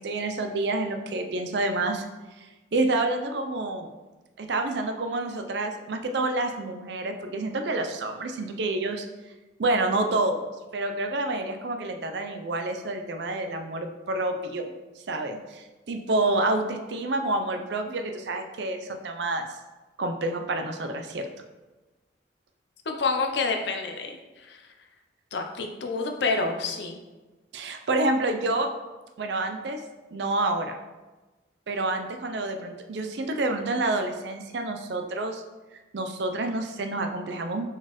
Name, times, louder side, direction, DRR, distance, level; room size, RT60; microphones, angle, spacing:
voice 1, 0.0-2.1 2.4-3.9 4.4-9.1 9.6-10.4 10.7-14.7 15.1-19.5 20.0-21.3 27.5-28.7 29.2-29.8 30.1-30.8 31.7-35.4 35.9-37.7, right 2 dB, 65° right, 5 dB, 0.5 m, -28 dB
voice 2, 22.9-24.2 24.5-24.6 25.3-27.0, left 4 dB, 65° left, 3 dB, 0.5 m, -28 dB
4.3 x 4.0 x 3.0 m, 1.2 s
head